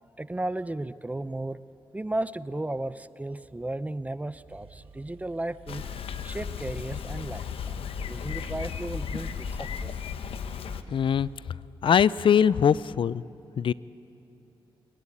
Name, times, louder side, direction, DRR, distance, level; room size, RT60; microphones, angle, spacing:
voice 1, 0.2-1.6 1.9-9.9, right 2 dB, 15° right, 15 dB, 0.6 m, -35 dB
sound 1, 4.2-4.3 4.5-12.3, right 7 dB, 80° right, 1.1 m, -51 dB
Bicycle, 5.7-10.8, left 7 dB, 85° left, 1.0 m, -35 dB
voice 2, 10.9-11.3 11.8-13.2 13.6-13.7, left 8 dB, 65° left, 20 dB, 0.5 m, -21 dB
21.0 x 20.5 x 9.9 m, 2.9 s
cardioid pair, 70°, 9 cm